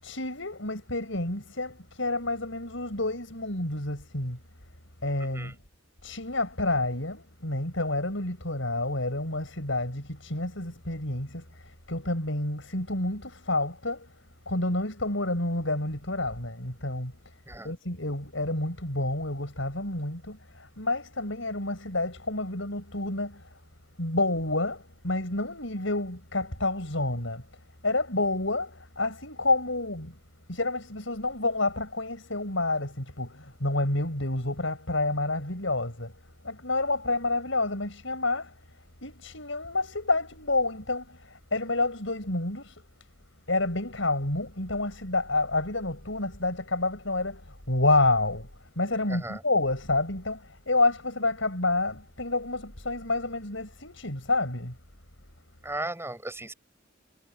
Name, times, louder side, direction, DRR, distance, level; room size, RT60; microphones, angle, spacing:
voice 1, 0.0-4.4 5.0-5.6 6.0-14.1 14.5-17.1 17.6-23.5 24.0-27.5 27.8-30.2 30.5-36.1 36.4-38.6 39.0-42.8 43.5-54.8, left 2 dB, 75° left, 7.3 m, -29 dB
voice 2, 49.1-49.4 55.6-56.5, right 2 dB, 15° right, 7.5 m, -36 dB
head